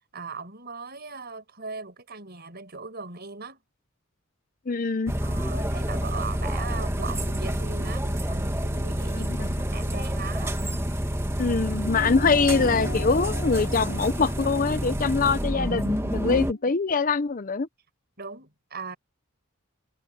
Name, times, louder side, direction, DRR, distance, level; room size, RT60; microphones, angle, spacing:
voice 1, 0.1-3.6 5.2-10.8 18.2-19.0, right 4 dB, 45° right, 5.7 m, -39 dB
voice 2, 4.7-5.1 9.1-9.5 11.4-17.7, left 4 dB, 40° left, 0.6 m, -24 dB
sound 1, 5.1-16.5, equal, 10° right, 2.0 m, -28 dB
sound 2, 11.8-16.6, left 2 dB, 85° left, 3.2 m, -39 dB
head